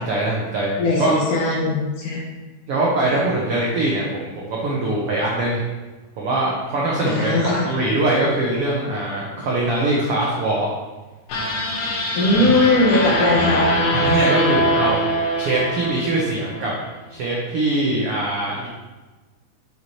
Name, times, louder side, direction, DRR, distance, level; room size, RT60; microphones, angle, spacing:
voice 1, 0.0-1.1 2.7-5.6 6.2-10.7 13.9-16.7 17.1-18.7, right 2 dB, 90° right, -4 dB, 1.2 m, -22 dB
voice 2, 0.8-2.2 7.0-7.6 12.1-13.7, left 2 dB, 60° left, -4 dB, 2.8 m, -19 dB
sound 1, 11.3-16.6, equal, 85° left, 3.4 m, -22 dB
8.1 x 6.9 x 3.1 m, 1.2 s
omnidirectional pair, 4.3 m